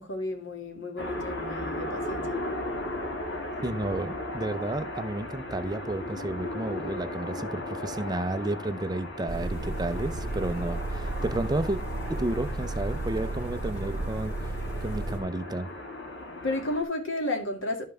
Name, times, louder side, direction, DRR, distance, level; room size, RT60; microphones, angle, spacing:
voice 1, 0.0-2.4 16.4-17.8, left 2 dB, 85° left, 2.3 m, -32 dB
sound 1, 1.0-16.8, left 1 dB, 65° left, 2.2 m, -36 dB
voice 2, 3.6-11.8 12.1-14.5 14.8-15.7, right 2 dB, 20° right, 0.5 m, -32 dB
sound 2, 9.3-15.2, right 2 dB, 15° left, 2.1 m, -33 dB
11.5 x 5.6 x 3.4 m
head